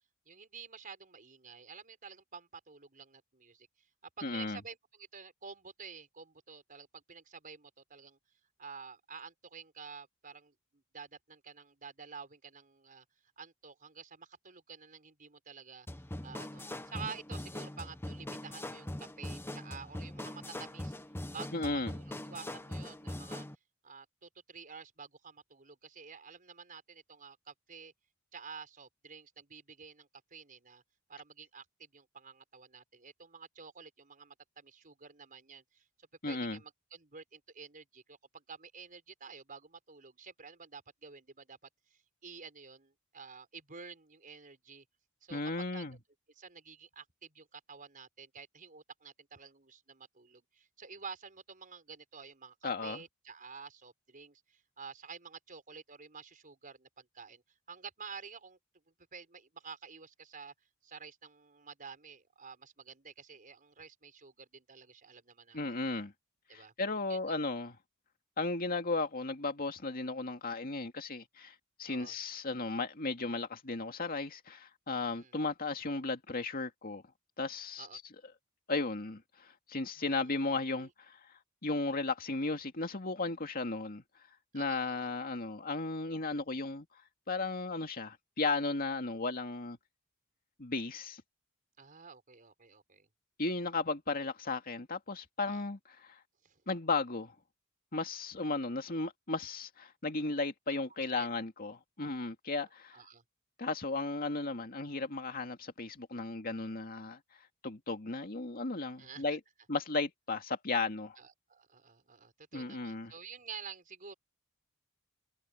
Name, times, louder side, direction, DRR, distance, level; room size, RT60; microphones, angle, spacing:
voice 1, 0.3-3.9 4.2-8.2 8.6-13.0 13.4-15.9 16.2-18.9 19.2-21.0 21.3-23.4 23.8-27.9 28.3-30.8 31.1-35.8 36.3-41.6 41.9-44.8 45.2-45.8 46.3-57.4 57.7-58.6 59.1-60.5 60.8-65.6 66.5-66.7 67.1-67.3 71.9-72.2 75.0-75.3 77.8-78.0 80.0-80.9 84.5-85.1 91.8-93.1 95.4-95.6 96.4-96.6 98.7-98.8 101.0-101.3 102.6-103.2 109.0-109.2 111.2-114.1, right 5 dB, 40° right, 5.0 m, -50 dB
voice 2, 4.2-4.6 21.5-21.9 36.2-36.6 45.3-46.0 52.6-53.0 65.5-66.1 66.5-67.8 68.4-77.0 77.4-77.9 78.7-81.2 81.6-84.0 84.5-86.9 87.3-89.8 90.6-91.2 93.4-96.2 96.7-97.3 97.9-103.0 103.6-107.2 107.6-109.4 109.7-111.2 112.5-113.1, left 3 dB, 45° left, 2.3 m, -35 dB
sound 1, 15.9-23.5, left 1 dB, 10° left, 1.0 m, -42 dB
head